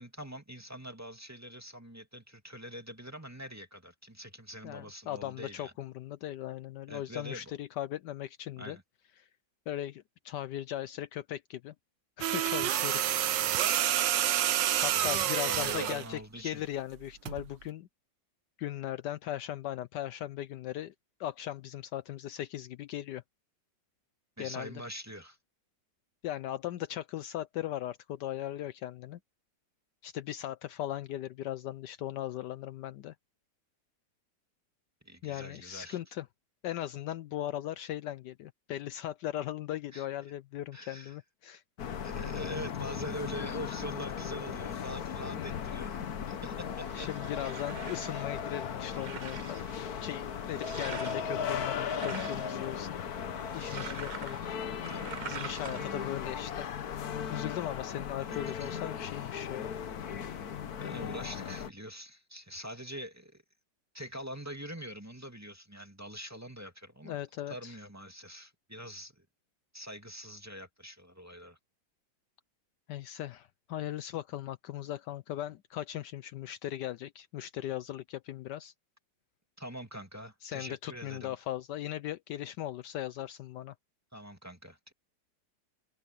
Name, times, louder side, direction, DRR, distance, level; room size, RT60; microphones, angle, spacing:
voice 1, 0.0-5.7 6.9-7.5 8.6-8.8 13.4-13.8 14.9-16.6 24.4-25.4 35.0-36.0 39.9-40.1 40.7-41.2 42.0-47.1 53.6-54.0 54.9-55.2 58.3-58.8 60.8-63.4 63.9-67.2 67.5-69.3 69.7-71.6 79.6-81.4 84.1-84.9, equal, 10° right, 2.3 m, -44 dB
voice 2, 4.6-8.8 9.2-9.3 9.7-11.7 12.2-13.1 14.8-17.9 18.6-20.9 21.2-23.2 24.4-24.7 26.2-29.2 30.0-33.1 35.2-36.3 36.6-41.6 45.3-45.6 46.9-49.6 50.0-53.0 53.5-54.4 55.3-56.7 57.3-59.7 67.0-67.8 72.9-78.7 80.4-83.7, left 12 dB, 75° left, 1.2 m, -38 dB
sound 1, 12.2-16.1 17.3-17.5, right 11 dB, 75° right, 1.5 m, -28 dB
sound 2, 41.8-61.7, left 7 dB, 55° left, 1.5 m, -37 dB
sound 3, 46.5-56.1, right 6 dB, 55° right, 0.5 m, -46 dB
omnidirectional pair, 2.0 m